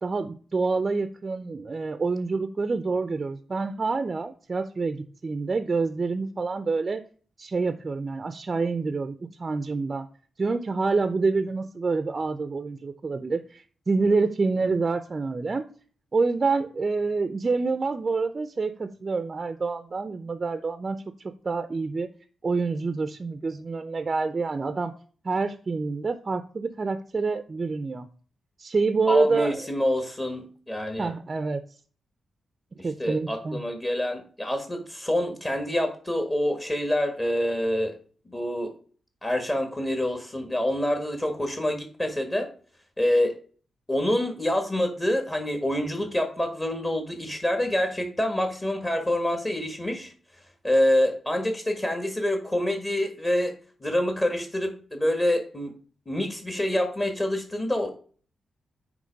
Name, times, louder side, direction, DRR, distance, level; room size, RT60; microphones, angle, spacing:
voice 1, 0.0-7.0 7.4-10.1 10.4-15.6 16.1-21.0 21.4-22.1 22.4-24.9 25.2-28.1 28.6-29.7 31.0-31.6 32.8-33.6, right 4 dB, 40° right, 10 dB, 0.5 m, -27 dB
voice 2, 29.1-31.1 32.8-38.0 38.3-38.7 39.2-42.5 43.0-43.4 43.9-50.1 50.6-53.5 53.8-55.7 56.1-57.9, left 1 dB, 25° left, 5 dB, 1.5 m, -26 dB
9.2 x 3.1 x 5.1 m, 0.42 s
cardioid pair, 85°, 0 cm